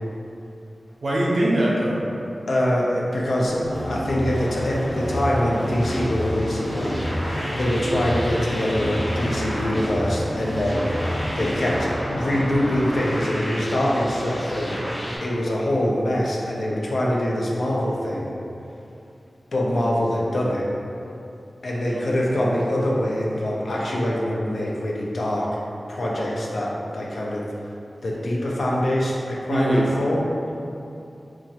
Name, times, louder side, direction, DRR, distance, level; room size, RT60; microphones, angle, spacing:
voice 1, 1.0-2.0 21.9-22.0 29.5-30.0, right 1 dB, 65° right, -4 dB, 0.5 m, -22 dB
voice 2, 2.5-6.9 7.6-18.3 19.5-20.7 21.6-25.5 25.9-27.4 28.0-30.2, left 1 dB, 75° left, -4 dB, 0.5 m, -24 dB
sound 1, 3.5-11.8, equal, 15° left, 0.7 m, -30 dB
sound 2, 4.2-15.2, equal, 40° left, 1.4 m, -32 dB
2.9 x 2.4 x 2.8 m, 2.7 s
wide cardioid pair, 75°, 0 cm